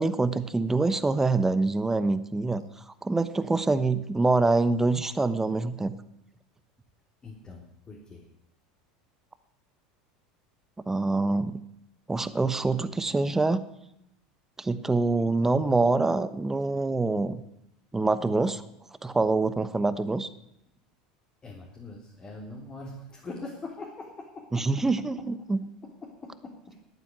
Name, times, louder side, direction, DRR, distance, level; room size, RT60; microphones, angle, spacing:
voice 1, 0.0-2.6 3.0-6.0 10.9-11.6 12.1-13.6 14.6-17.4 17.9-18.6 19.0-20.3 24.5-25.6, right 3 dB, 10° right, 13 dB, 1.0 m, -25 dB
voice 2, 7.2-8.2 21.4-24.6 26.0-26.7, left 3 dB, 25° left, -2 dB, 3.4 m, -42 dB
11.0 x 9.1 x 9.5 m, 0.83 s
supercardioid pair, 105°, 3 cm